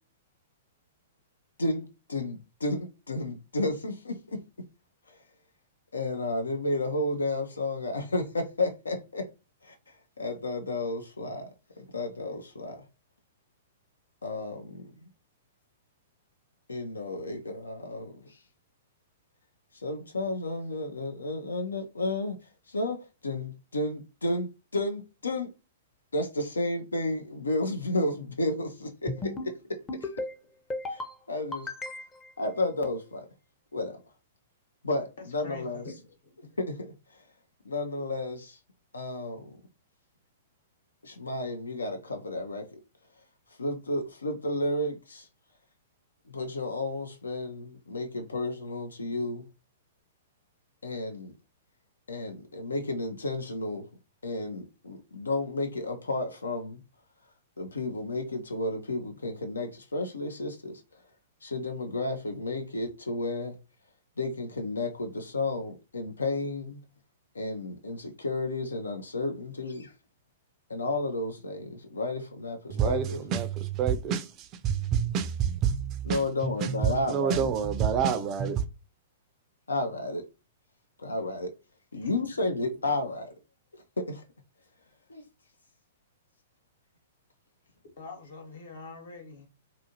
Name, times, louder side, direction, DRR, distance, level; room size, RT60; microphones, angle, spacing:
voice 1, 1.6-4.4 5.1-5.2 5.9-9.3 9.6-9.8 10.2-11.5 11.8-12.8 14.2-15.1 16.7-18.4 19.7-22.4 22.7-25.5 26.1-30.1 30.9-31.7 32.4-33.3 33.7-34.0 34.8-35.8 36.6-37.2 37.6-38.6 38.9-39.6 41.0-42.7 43.6-45.3 46.3-49.4 50.8-51.3 52.1-53.8 54.2-56.8 57.6-60.8 61.4-63.6 64.2-66.8 67.3-69.9 70.7-73.2 76.1-77.5 79.7-80.2 81.0-81.5 81.9-83.3 84.0-84.2 85.1-85.2, left 2 dB, 80° left, 0.4 m, -32 dB
sound 1, 29.1-29.5 29.9-30.3 30.7-31.1 31.5-32.3, left 2 dB, 15° left, 0.5 m, -35 dB
voice 2, 35.2-36.1 36.4-36.5 82.0-82.4 88.0-89.5, left 3 dB, 65° left, 1.1 m, -45 dB
voice 3, 72.7-78.6, right 7 dB, 35° right, 0.4 m, -28 dB
2.6 x 2.5 x 2.7 m
figure-of-eight pair, 110°, 0 cm